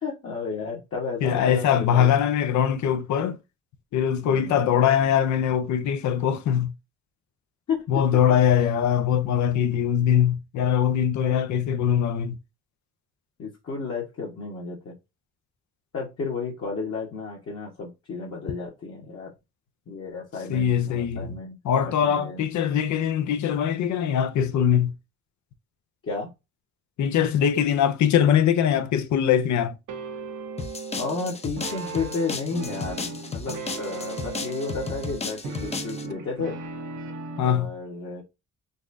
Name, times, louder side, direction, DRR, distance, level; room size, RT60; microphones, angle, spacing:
voice 1, 0.0-2.2 4.2-4.6 7.7-7.8 11.2-11.4 13.4-14.9 15.9-19.3 19.9-21.6 21.8-22.5 26.0-26.3 30.9-36.6 37.4-38.2, left 4 dB, 50° left, 1.3 m, -32 dB
voice 2, 1.2-3.4 3.9-6.7 7.9-12.4 20.5-21.3 21.6-24.9 27.0-29.8 37.4-37.7, left 9 dB, 70° left, 0.6 m, -22 dB
sound 1, 29.9-37.6, right 3 dB, 80° right, 0.9 m, -37 dB
sound 2, 30.6-36.1, left 4 dB, 20° left, 0.6 m, -34 dB
4.1 x 2.5 x 2.5 m
cardioid pair, 90°, 30 cm